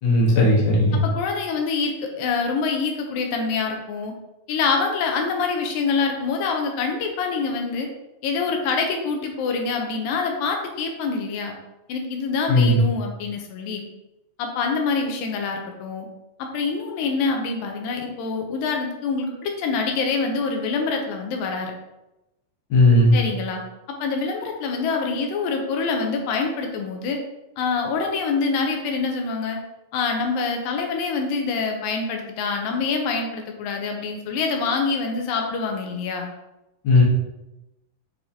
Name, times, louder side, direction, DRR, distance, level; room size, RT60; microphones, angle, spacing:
voice 1, 0.0-1.0 12.5-12.8 22.7-23.1 36.8-37.0, left 1 dB, 60° left, -4 dB, 1.3 m, -16 dB
voice 2, 1.0-4.1 4.5-7.9 8.2-11.5 11.9-13.8 14.4-16.1 16.4-21.7 23.1-23.6 23.9-27.2 27.6-29.6 29.9-36.3 37.0-37.1, left 4 dB, 80° left, 2 dB, 2.3 m, -25 dB
6.7 x 2.9 x 2.7 m, 0.94 s
omnidirectional pair, 4.0 m